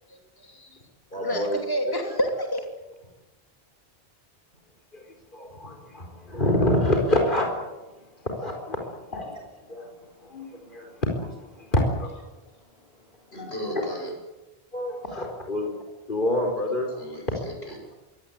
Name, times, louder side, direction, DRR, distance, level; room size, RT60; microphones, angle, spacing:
voice 1, 0.1-0.8 1.1-2.6, equal, 20° left, 3 dB, 2.9 m, -29 dB
voice 2, 1.1-1.6 4.9-5.0 5.3-7.5 8.2-8.8 9.1-9.4 9.7-9.8 10.2-11.3 11.6-12.1 13.4-13.5 14.7-15.7 16.1-16.9, left 1 dB, 55° left, 2 dB, 4.8 m, -26 dB
voice 3, 13.3-14.1 16.5-18.0, equal, 80° left, 1 dB, 8.5 m, -37 dB
24.0 x 18.5 x 9.7 m, 1.1 s
omnidirectional pair, 1.0 m